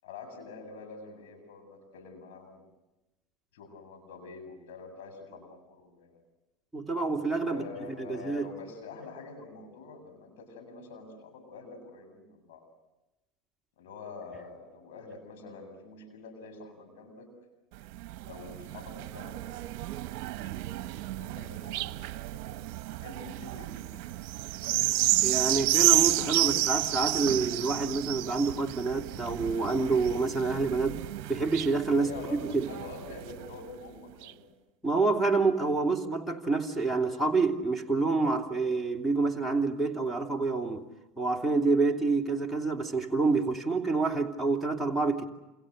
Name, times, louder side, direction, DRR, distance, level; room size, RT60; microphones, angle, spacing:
voice 1, 0.0-2.6 3.5-6.2 7.5-12.6 13.8-17.3 18.2-24.1 32.0-34.5, left 3 dB, 75° left, 7.8 m, -46 dB
voice 2, 6.7-7.6 7.9-8.5 25.2-31.0 31.3-32.7 34.8-40.8 41.2-45.3, right 3 dB, ahead, 2.9 m, -27 dB
sound 1, 17.8-33.6 34.2-34.3, right 17 dB, 60° right, 0.9 m, -31 dB
29.0 x 28.5 x 6.5 m
hypercardioid pair, 90°, 0 cm